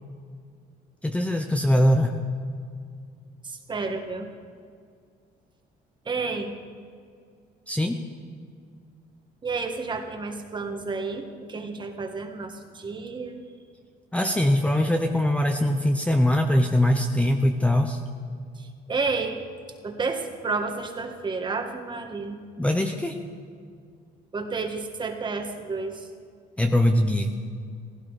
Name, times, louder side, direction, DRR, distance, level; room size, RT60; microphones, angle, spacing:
voice 1, 1.0-2.2 7.7-8.0 14.1-18.0 22.6-23.2 26.6-27.3, left 1 dB, 5° left, 4 dB, 0.8 m, -22 dB
voice 2, 3.4-4.3 6.1-6.6 9.4-13.4 18.6-19.4 19.8-22.4 24.3-26.1, right 4 dB, 25° right, 5 dB, 1.7 m, -31 dB
16.0 x 15.5 x 5.0 m, 2.2 s
cardioid pair, 110°, 17 cm